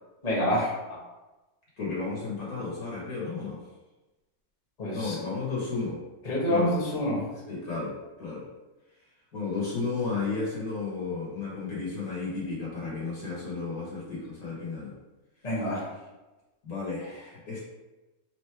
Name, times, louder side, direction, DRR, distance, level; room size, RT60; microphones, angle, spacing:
voice 1, 0.2-0.7 4.8-5.1 6.2-7.2 15.4-15.8, equal, 25° left, -6 dB, 1.0 m, -27 dB
voice 2, 1.8-3.6 4.9-6.0 6.5-6.7 7.5-8.4 9.3-14.9 16.6-17.6, left 4 dB, 50° left, -6 dB, 1.4 m, -33 dB
4.5 x 2.1 x 4.5 m, 1.1 s
omnidirectional pair, 2.2 m